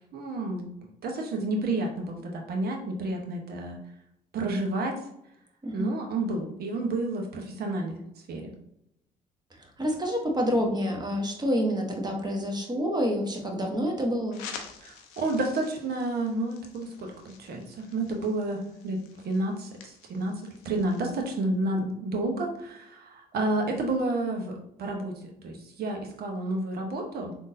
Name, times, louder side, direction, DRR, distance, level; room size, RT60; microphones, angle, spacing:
voice 1, 0.1-3.8 4.3-5.0 5.7-8.0 8.3-8.5 14.8-27.4, right 2 dB, 60° right, 2 dB, 0.9 m, -30 dB
voice 2, 5.6-6.0 9.6-14.4, equal, 20° right, 1 dB, 1.0 m, -28 dB
sound 1, 14.3-21.1, left 7 dB, 85° left, 0.5 m, -48 dB
3.6 x 2.6 x 2.6 m, 0.78 s
hypercardioid pair, 60°, 18 cm